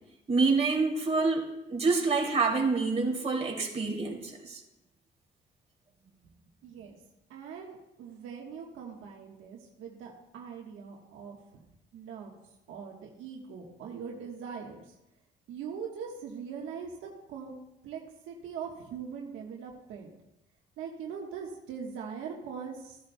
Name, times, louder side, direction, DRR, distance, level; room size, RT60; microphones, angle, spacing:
voice 1, 0.3-4.6, right 4 dB, 30° right, -1 dB, 2.6 m, -27 dB
voice 2, 6.6-7.0 7.3-11.6 11.9-12.3 12.7-14.8 15.5-18.0 18.3-20.1 20.8-23.0, right 6 dB, 90° right, -1 dB, 1.3 m, -41 dB
15.0 x 10.5 x 2.2 m, 0.91 s
cardioid pair, 90°, 20 cm